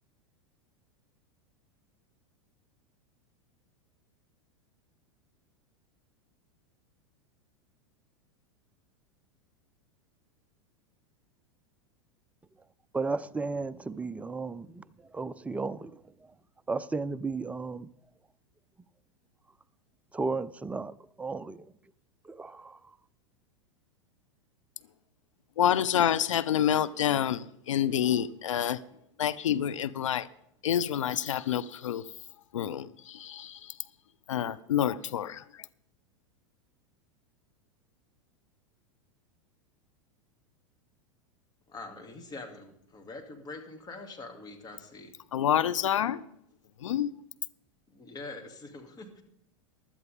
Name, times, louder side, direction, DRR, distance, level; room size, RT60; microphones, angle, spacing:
voice 1, 12.9-14.8 15.1-16.0 16.7-17.9 20.1-21.7 22.3-22.8, right 3 dB, 10° right, 0.4 m, -34 dB
voice 2, 25.6-28.8 29.2-30.3 30.6-32.1 32.5-33.8 34.3-35.7 45.3-46.2 46.8-47.1, left 10 dB, 80° left, 0.5 m, -28 dB
voice 3, 41.7-45.1 47.9-49.2, left 3 dB, 25° left, 2.4 m, -44 dB
15.5 x 12.0 x 3.6 m
hypercardioid pair, 95°, 16 cm